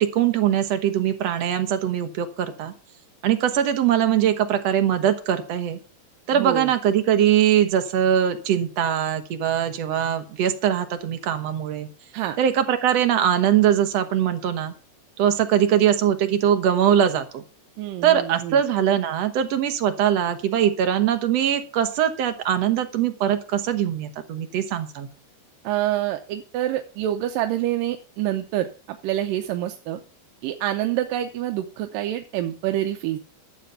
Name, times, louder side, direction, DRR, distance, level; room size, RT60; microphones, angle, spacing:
voice 1, 0.0-2.7 3.2-5.8 6.3-11.9 12.4-14.7 15.2-17.4 18.0-25.1, right 10 dB, 60° right, 9 dB, 1.9 m, -21 dB
voice 2, 6.3-6.7 12.1-12.4 17.8-18.6 25.6-30.0 30.4-33.2, right 13 dB, 85° right, 7 dB, 2.4 m, -27 dB
12.0 x 7.4 x 5.6 m, 0.39 s
omnidirectional pair, 3.9 m